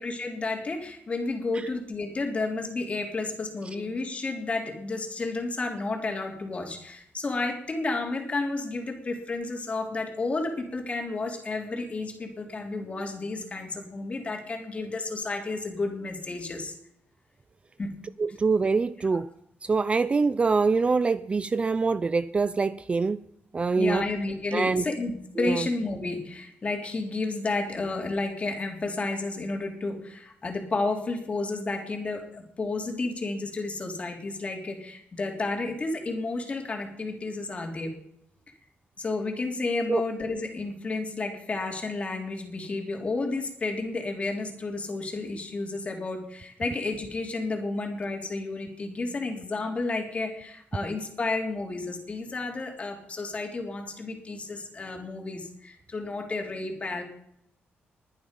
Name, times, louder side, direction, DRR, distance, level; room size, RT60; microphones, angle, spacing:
voice 1, 0.0-16.7 17.8-18.0 19.1-19.2 23.8-25.1 25.4-38.0 39.0-57.0, left 3 dB, 30° left, 3 dB, 3.3 m, -31 dB
voice 2, 18.2-19.3 19.6-23.2 23.5-24.1 24.5-24.8 25.4-25.7 39.9-40.0, right 4 dB, 30° right, 15 dB, 0.5 m, -24 dB
21.0 x 10.0 x 5.3 m, 0.73 s
cardioid pair, 125°, 4 cm